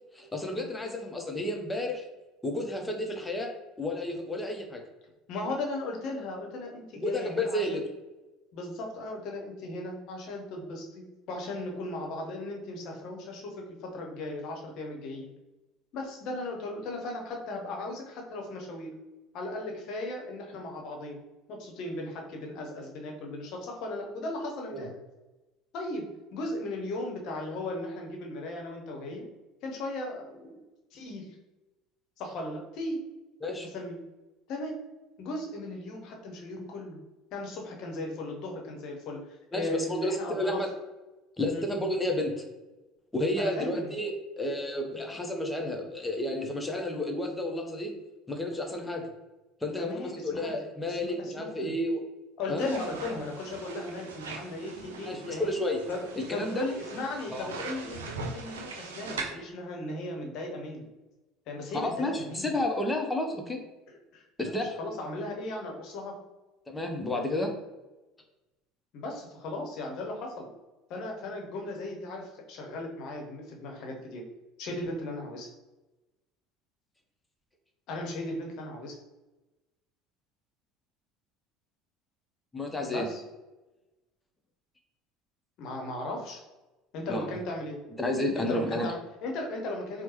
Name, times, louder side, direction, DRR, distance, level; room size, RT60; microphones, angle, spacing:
voice 1, 0.1-2.1 2.4-4.8 6.9-7.8 24.7-24.9 33.4-33.7 39.5-40.7 41.4-42.4 43.1-47.9 48.3-49.1 49.6-52.0 52.5-52.7 55.0-55.8 56.2-56.7 57.3-57.5 61.7-63.7 64.4-64.8 66.7-67.5 82.5-83.1 87.1-87.3 88.0-88.9, left 1 dB, 10° left, 3 dB, 0.7 m, -31 dB
voice 2, 5.3-7.8 8.5-15.3 15.9-18.9 19.3-21.2 21.5-25.0 25.7-29.3 29.6-30.6 30.9-31.4 32.2-33.0 33.7-34.0 34.5-34.8 35.2-37.0 37.3-39.2 39.5-40.6 41.5-41.7 43.4-43.9 44.9-45.0 49.8-50.6 50.9-51.7 52.4-55.5 55.9-56.0 56.3-60.9 61.5-62.5 63.9-66.2 68.9-70.5 70.9-74.2 74.6-75.5 77.9-79.0 82.9-83.2 85.6-86.4 86.9-87.8 88.4-90.0, left 2 dB, 50° left, 1 dB, 0.8 m, -37 dB
sound 1, 52.6-59.3, right 3 dB, 70° right, 0.4 m, -41 dB
4.4 x 2.1 x 2.9 m, 1.1 s
figure-of-eight pair, 65°, 0 cm